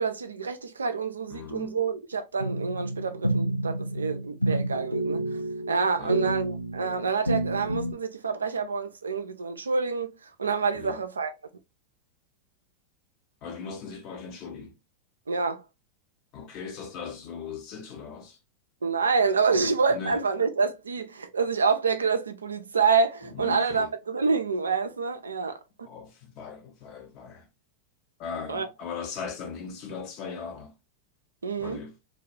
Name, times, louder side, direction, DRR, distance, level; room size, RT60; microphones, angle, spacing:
voice 1, 0.0-5.2 5.7-10.1 10.4-11.3 15.3-15.6 18.8-25.9 28.5-28.7 31.4-31.8, right 5 dB, 75° right, 0.3 m, -27 dB
voice 2, 1.3-1.8 6.0-6.4 10.7-11.0 13.4-14.7 16.3-18.4 19.5-20.2 23.3-23.9 25.8-27.5 28.2-30.7 31.6-31.9, left 5 dB, 40° left, 0.7 m, -39 dB
sound 1, 2.4-7.9, right 1 dB, 90° left, 0.4 m, -29 dB
2.2 x 2.2 x 2.6 m
figure-of-eight pair, 90°, 0 cm